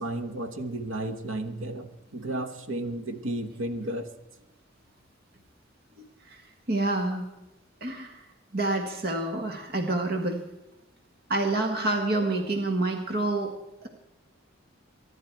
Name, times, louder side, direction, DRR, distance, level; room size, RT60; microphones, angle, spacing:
voice 1, 0.0-4.1, right 1 dB, 80° right, 9 dB, 1.2 m, -33 dB
voice 2, 6.7-7.2 7.8-10.4 11.3-13.5 13.8-13.9, right 2 dB, 50° right, 5 dB, 1.4 m, -28 dB
23.5 x 11.0 x 4.5 m, 0.98 s
head